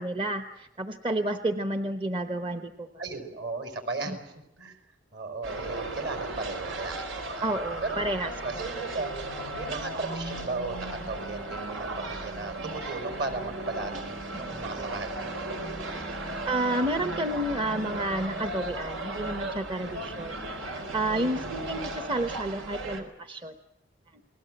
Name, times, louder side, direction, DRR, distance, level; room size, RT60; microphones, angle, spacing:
voice 1, 0.0-2.9 4.1-4.2 7.4-8.6 14.3-14.5 16.2-23.5, right 1 dB, 25° right, 8 dB, 1.0 m, -31 dB
voice 2, 3.0-4.8 5.1-7.5 7.8-9.1 9.5-15.3 19.7-20.2 21.0-21.5, right 3 dB, 55° right, 7 dB, 5.0 m, -36 dB
sound 1, 5.4-23.0, right 2 dB, 85° right, 4.2 m, -36 dB
29.5 x 20.5 x 7.8 m, 0.86 s
head